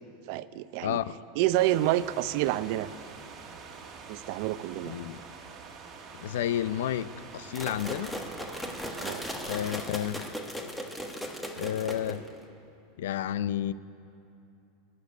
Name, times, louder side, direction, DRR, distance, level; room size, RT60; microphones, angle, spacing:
voice 1, 0.3-1.0 1.4-2.9 4.1-5.0 9.0-9.3, right 14 dB, 55° right, 15 dB, 0.5 m, -28 dB
voice 2, 0.8-1.2 4.9-5.2 6.2-8.2 9.4-10.3 11.6-12.2 13.0-13.7, left 11 dB, 80° left, 16 dB, 0.5 m, -31 dB
sound 1, 1.5-9.9, right 5 dB, 35° right, 1.6 m, -46 dB
sound 2, 7.5-12.4, equal, 5° left, 1.3 m, -37 dB
20.5 x 6.9 x 9.5 m, 2.8 s
supercardioid pair, 140°, 0 cm